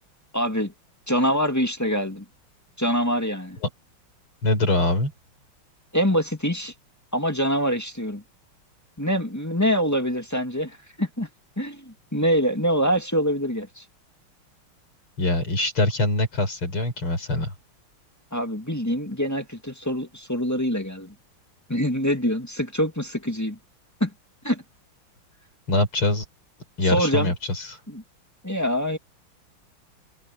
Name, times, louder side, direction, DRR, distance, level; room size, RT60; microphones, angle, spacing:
voice 1, 0.3-0.7 1.1-2.2 2.8-3.6 5.9-6.7 7.1-8.2 9.0-11.3 11.6-13.8 18.3-21.1 21.7-23.6 24.0-24.1 24.4-24.6 26.8-27.3 27.9-28.0 28.4-29.0, equal, 10° left, 1.9 m, -25 dB
voice 2, 4.4-5.1 15.2-17.5 25.7-26.2 26.8-27.8, left 2 dB, 85° left, 6.6 m, -23 dB
omnidirectional pair, 2.3 m